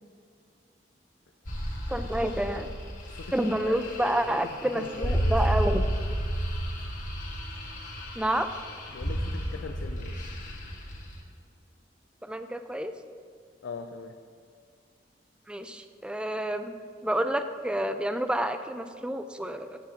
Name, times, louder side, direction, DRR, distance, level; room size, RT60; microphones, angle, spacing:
sound 1, 1.4-11.2, equal, 50° left, 1.4 m, -32 dB
voice 1, 1.9-2.7 3.3-5.8 8.2-8.5 12.2-12.9 15.5-16.7 17.0-19.8, right 1 dB, 5° right, 9 dB, 0.3 m, -29 dB
voice 2, 3.7-4.2 4.7-5.4 8.9-10.2 13.6-14.1, left 4 dB, 75° left, 4 dB, 0.4 m, -40 dB
14.0 x 6.3 x 2.8 m, 2.2 s
head